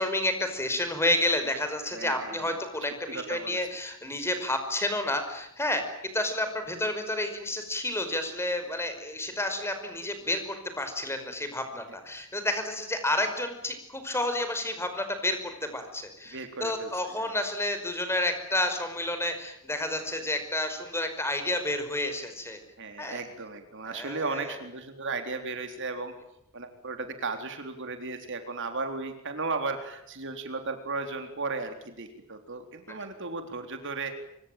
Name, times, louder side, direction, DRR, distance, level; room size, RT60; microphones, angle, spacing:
voice 1, 0.0-5.8 6.1-22.6 23.0-23.2 23.8-24.6, left 1 dB, 10° left, 8 dB, 5.3 m, -30 dB
voice 2, 1.9-2.6 3.1-3.6 16.3-16.9 17.2-17.3 22.8-26.1 26.5-34.2, right 3 dB, 55° right, 6 dB, 3.8 m, -35 dB
26.0 x 24.5 x 9.2 m, 0.76 s
head